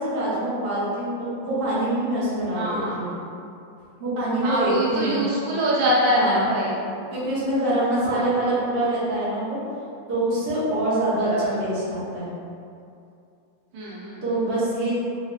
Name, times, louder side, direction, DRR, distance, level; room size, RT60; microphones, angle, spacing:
voice 1, 0.0-3.1 4.0-5.2 6.1-6.5 7.1-9.6 10.1-12.3 14.2-14.9, right 1 dB, 40° right, -10 dB, 0.9 m, -25 dB
voice 2, 2.5-3.0 4.4-6.8 8.0-8.3 11.2-11.4 13.7-14.2, equal, 85° right, -6 dB, 1.5 m, -24 dB
3.8 x 2.7 x 2.3 m, 2.6 s
omnidirectional pair, 2.1 m